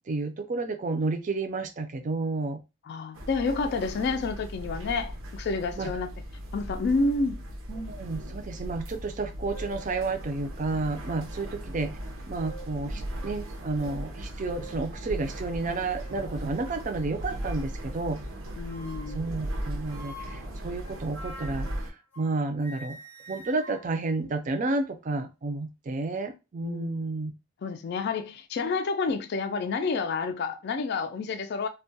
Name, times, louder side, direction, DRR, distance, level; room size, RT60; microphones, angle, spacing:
voice 1, 0.1-2.6 5.8-5.9 7.7-12.0 12.3-18.2 19.1-23.0 23.3-27.3, right 3 dB, 40° right, 0.4 m, -31 dB
voice 2, 2.8-6.1 6.5-7.4 18.6-19.3 26.6-27.0 27.6-31.7, left 4 dB, 55° left, 0.3 m, -29 dB
sound 1, 3.1-21.9, equal, 90° right, 0.6 m, -38 dB
sound 2, 9.1-9.2 9.5-9.9 10.7-10.8 12.0-12.8 13.2-13.4 13.8-14.0 14.6-14.9 15.5-16.3 17.3-17.7 18.7-19.3 19.9-22.4 22.6-24.9, right 2 dB, 10° left, 0.6 m, -47 dB
2.2 x 2.1 x 2.6 m
head